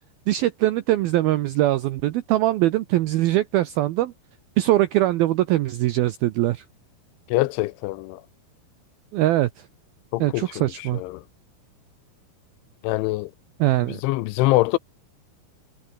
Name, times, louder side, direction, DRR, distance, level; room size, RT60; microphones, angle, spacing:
voice 1, 0.3-4.1 4.6-6.6 9.1-9.5 10.2-11.0 13.6-14.0, right 15 dB, 80° right, 2.1 m, -22 dB
voice 2, 7.3-8.2 10.1-10.6 10.9-11.2 12.8-13.3 14.0-14.8, left 19 dB, 85° left, 3.2 m, -23 dB
omnidirectional pair, 5.4 m